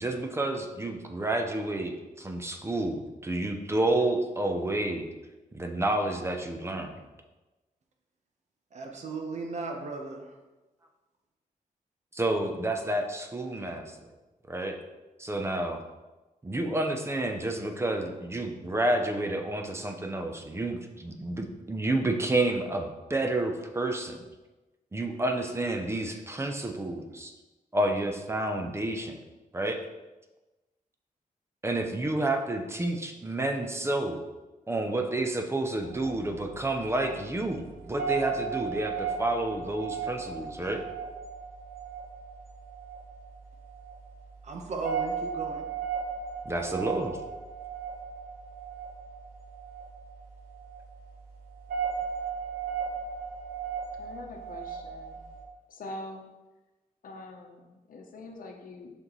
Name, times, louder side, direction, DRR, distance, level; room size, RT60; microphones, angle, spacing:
voice 1, 0.0-5.1 5.5-7.0 12.1-14.1 14.5-14.8 15.2-15.8 16.4-24.3 24.9-27.3 27.7-29.2 29.5-29.8 31.6-34.2 34.7-40.8 46.5-47.2, right 2 dB, 15° right, 4 dB, 0.6 m, -30 dB
voice 2, 8.7-10.3 44.4-45.6, right 3 dB, 50° right, 2 dB, 0.9 m, -36 dB
sound 1, 35.8-55.4, right 6 dB, 90° right, 1.3 m, -36 dB
voice 3, 54.0-55.2 55.7-56.3 57.0-59.0, left 2 dB, 70° left, 3 dB, 0.8 m, -44 dB
6.2 x 5.3 x 3.1 m, 1.1 s
wide cardioid pair, 130°, 15 cm